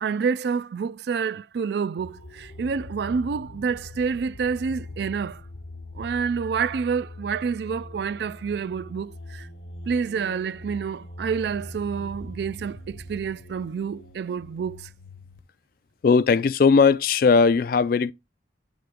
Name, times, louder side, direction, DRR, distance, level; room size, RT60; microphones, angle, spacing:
voice 1, 0.0-5.4 5.9-9.5 9.9-14.9, right 6 dB, 60° right, 0.3 m, -28 dB
sound 1, 2.0-15.4, left 1 dB, 80° left, 0.9 m, -42 dB
voice 2, 16.0-18.1, left 5 dB, 50° left, 0.3 m, -18 dB
8.9 x 3.4 x 3.5 m
head